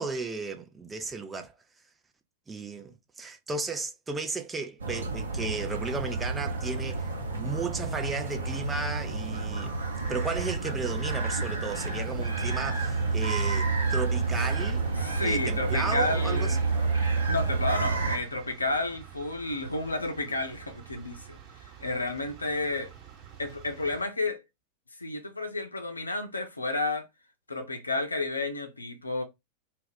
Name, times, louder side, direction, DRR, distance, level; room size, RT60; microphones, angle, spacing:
voice 1, 0.0-1.5 2.5-7.1 7.3-9.8 10.1-14.9 15.2-16.6, right 4 dB, 15° right, 0.5 m, -34 dB
sound 1, 4.8-18.2, right 3 dB, 70° right, 0.7 m, -29 dB
sound 2, 10.0-24.0, right 9 dB, 35° right, 1.0 m, -49 dB
voice 2, 15.0-16.6 17.3-22.9 23.4-24.4 25.0-27.1 27.5-29.2, left 2 dB, 80° left, 0.5 m, -31 dB
2.3 x 2.1 x 3.5 m
figure-of-eight pair, 90°, 0 cm